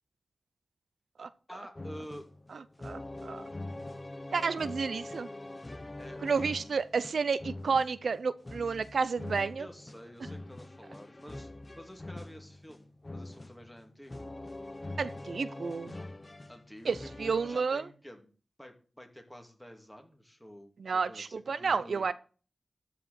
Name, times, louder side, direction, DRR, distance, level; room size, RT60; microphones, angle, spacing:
voice 1, 1.5-2.3 6.0-6.2 9.6-14.2 16.5-18.3 18.6-22.1, equal, 5° left, 4 dB, 2.4 m, -49 dB
sound 1, 1.8-17.6, left 2 dB, 30° left, 0.7 m, -44 dB
voice 2, 2.8-3.4 4.3-5.3 6.2-9.7 15.0-16.0 16.8-17.9 20.8-22.1, right 5 dB, 90° right, 15 dB, 0.5 m, -31 dB
13.0 x 4.9 x 7.7 m, 0.39 s
wide cardioid pair, 80°, 0 cm